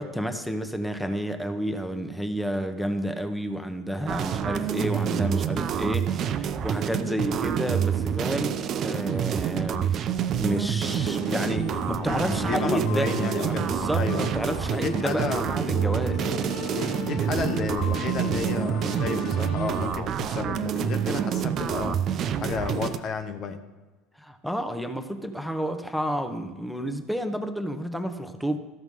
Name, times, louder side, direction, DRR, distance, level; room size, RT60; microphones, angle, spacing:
voice 1, 0.0-13.1 13.4-16.3 24.2-28.6, equal, ahead, 7 dB, 1.1 m, -30 dB
sound 1, 4.1-23.0, right 8 dB, 45° right, 0.6 m, -27 dB
sound 2, 10.9-20.0, left 2 dB, 60° left, 2.1 m, -36 dB
voice 2, 12.1-14.3 14.7-15.5 16.7-22.1 22.4-23.6, left 5 dB, 45° left, 8 dB, 0.9 m, -32 dB
13.5 x 6.0 x 5.5 m, 1.3 s
hypercardioid pair, 70°, 0 cm